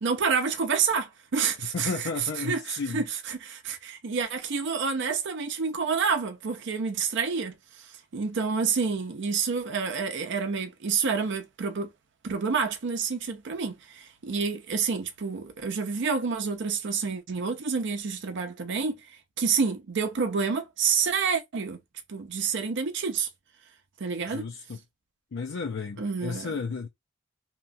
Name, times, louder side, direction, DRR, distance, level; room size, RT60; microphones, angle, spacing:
voice 1, 0.0-1.9 2.4-11.9 12.2-19.1 19.4-21.8 22.1-23.3 24.0-24.5 26.0-26.5, right 5 dB, 60° right, 0.6 m, -28 dB
voice 2, 1.7-3.0 24.3-24.8 25.3-26.9, left 4 dB, 65° left, 0.5 m, -33 dB
2.9 x 2.3 x 2.5 m
head